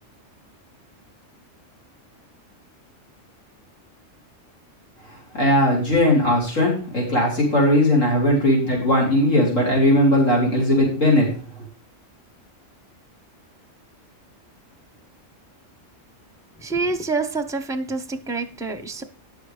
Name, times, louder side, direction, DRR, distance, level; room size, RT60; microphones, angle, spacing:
voice 1, 5.3-11.3, left 1 dB, 80° left, 4.1 m, -18 dB
voice 2, 16.6-19.0, right 3 dB, 5° right, 0.7 m, -27 dB
10.5 x 6.4 x 4.9 m
omnidirectional pair, 1.3 m